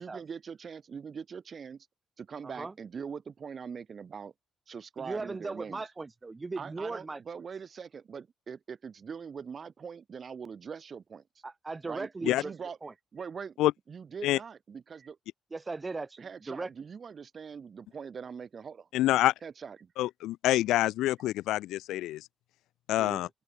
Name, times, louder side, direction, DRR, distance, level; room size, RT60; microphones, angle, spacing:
voice 1, 0.0-1.9 2.2-4.3 4.7-5.8 6.6-11.2 11.9-12.8 13.1-13.6 13.9-15.2 16.2-18.9 19.4-19.9, right 6 dB, 45° right, 3.7 m, -42 dB
voice 2, 2.4-2.7 5.0-7.2 11.4-12.5 12.8-12.9 15.5-16.7 23.0-23.2, right 3 dB, 25° right, 3.2 m, -38 dB
voice 3, 18.9-19.3 20.0-22.2 22.9-23.3, left 15 dB, 90° left, 0.6 m, -26 dB
open air
cardioid pair, 90°, 0 cm